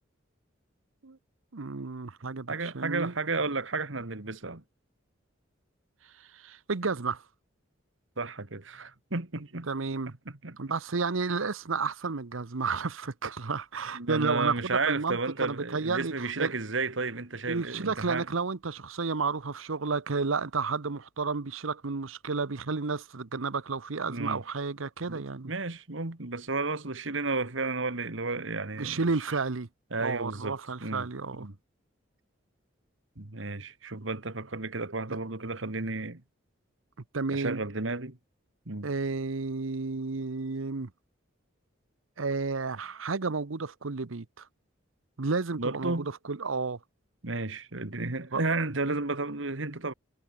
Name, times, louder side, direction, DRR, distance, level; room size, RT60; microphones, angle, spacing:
voice 1, 1.5-3.1 6.3-7.2 9.4-10.1 10.6-14.5 14.9-16.5 17.5-25.5 28.8-29.7 30.0-31.5 35.1-35.2 37.1-37.6 38.8-40.9 42.2-44.5 45.2-46.8 48.3-48.4, right 4 dB, 90° right, 0.9 m, -32 dB
voice 2, 2.5-4.6 8.2-9.7 10.3-10.6 13.9-18.3 24.1-24.4 25.1-29.3 29.9-31.1 31.3-31.6 33.2-36.2 37.3-38.2 38.7-38.9 45.6-46.1 47.2-49.9, right 3 dB, 70° right, 2.0 m, -33 dB
head